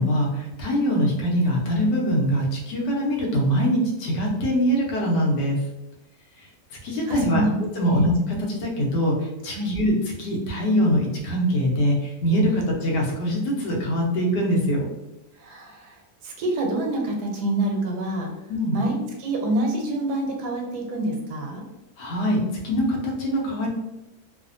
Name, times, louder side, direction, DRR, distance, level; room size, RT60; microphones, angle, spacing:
voice 1, 0.0-5.6 6.8-7.4 7.8-9.1 9.4-14.8 18.5-18.8 22.0-22.4 22.6-23.7, equal, 90° left, -1 dB, 1.3 m, -23 dB
voice 2, 7.1-8.1 9.5-9.7 15.4-18.3 18.7-21.6, right 1 dB, 80° right, 1 dB, 1.2 m, -27 dB
3.2 x 2.1 x 2.5 m, 0.99 s
omnidirectional pair, 1.8 m